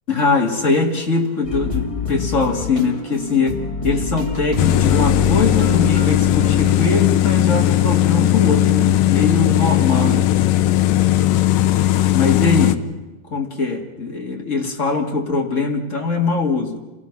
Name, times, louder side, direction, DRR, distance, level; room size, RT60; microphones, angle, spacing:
voice 1, 0.1-3.6 3.8-10.3 12.1-12.8 13.3-16.8, left 4 dB, 35° left, 1 dB, 1.1 m, -21 dB
sound 1, 1.4-6.7, left 3 dB, 20° left, 1.0 m, -26 dB
sound 2, 4.6-12.8, left 13 dB, 80° left, 2.0 m, -17 dB
27.5 x 18.0 x 6.0 m, 1.2 s
omnidirectional pair, 4.7 m